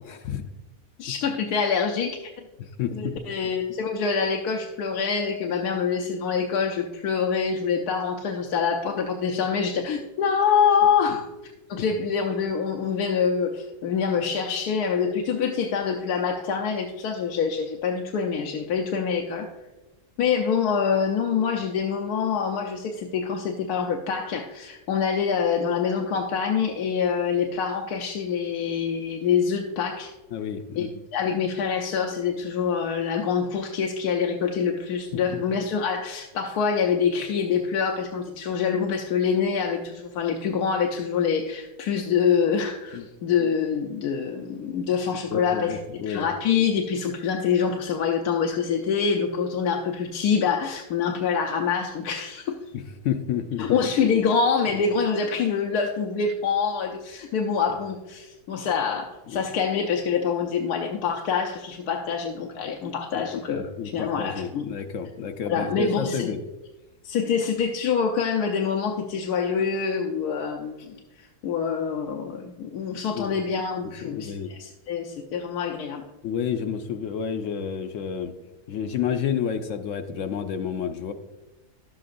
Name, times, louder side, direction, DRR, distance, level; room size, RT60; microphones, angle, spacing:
voice 1, 0.1-0.4 2.6-3.2 30.3-30.9 35.1-35.4 42.9-43.1 45.3-46.3 52.7-53.8 54.7-54.8 59.3-59.4 63.1-63.2 63.5-66.4 73.1-73.4 73.8-74.5 76.2-78.3 78.7-81.1, left 8 dB, 65° left, 7 dB, 0.8 m, -30 dB
voice 2, 1.0-2.5 2.9-11.3 11.7-19.5 20.2-30.1 30.8-30.9 31.1-52.6 53.6-64.7 65.4-66.3 67.0-76.0, left 6 dB, 90° left, 3 dB, 1.2 m, -25 dB
11.5 x 7.7 x 2.5 m, 1.1 s
omnidirectional pair, 1.6 m